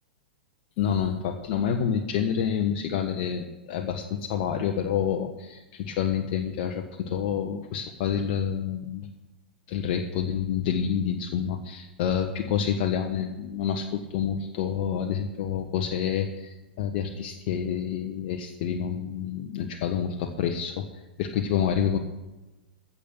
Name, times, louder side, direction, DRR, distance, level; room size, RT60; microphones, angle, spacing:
voice 1, 0.8-9.1 9.7-22.0, left 8 dB, 45° left, 4 dB, 1.2 m, -28 dB
15.5 x 7.3 x 7.2 m, 1.1 s
figure-of-eight pair, 100°, 6 cm